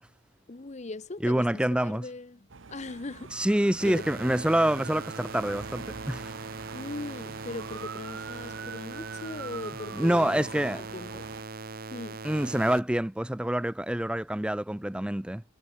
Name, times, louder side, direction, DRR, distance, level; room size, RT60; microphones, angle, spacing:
voice 1, 0.5-3.3 3.8-4.1 6.7-11.3 11.9-12.2, left 2 dB, 35° left, 0.7 m, -40 dB
voice 2, 1.2-2.0 3.4-6.3 9.9-10.8 12.2-15.4, right 1 dB, 5° right, 0.4 m, -26 dB
sound 1, 2.5-11.4, right 5 dB, 70° right, 1.0 m, -44 dB
sound 2, 3.8-12.8, right 3 dB, 45° right, 1.1 m, -40 dB
head